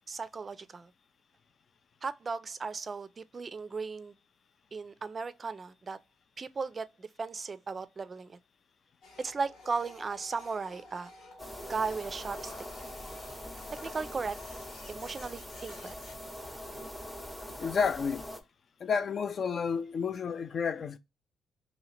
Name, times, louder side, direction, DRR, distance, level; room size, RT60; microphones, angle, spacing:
voice 1, 0.1-0.9 2.0-4.1 4.7-6.0 6.4-8.4 9.2-11.1 11.7-12.5 13.8-14.4 14.9-15.9, right 4 dB, 35° right, 0.4 m, -36 dB
Printer, 9.0-16.9, left 2 dB, 85° left, 1.5 m, -52 dB
sound 1, 11.4-18.4, left 1 dB, 10° left, 0.7 m, -43 dB
voice 2, 17.6-18.3 18.8-21.0, left 6 dB, 50° left, 0.4 m, -30 dB
2.9 x 2.8 x 4.2 m
cardioid pair, 90°, 0 cm